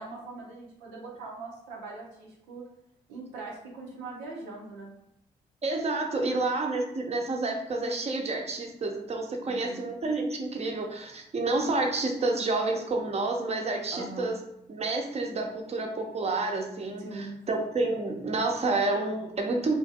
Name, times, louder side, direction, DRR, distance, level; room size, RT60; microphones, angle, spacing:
voice 1, 0.0-2.6 3.1-4.9 9.4-9.8 13.9-14.3 17.0-17.4, right 3 dB, 90° right, -2 dB, 0.6 m, -41 dB
voice 2, 5.6-14.4 14.7-19.8, right 2 dB, 35° right, 2 dB, 0.7 m, -29 dB
3.0 x 2.5 x 2.7 m, 0.77 s
hypercardioid pair, 40°, 19 cm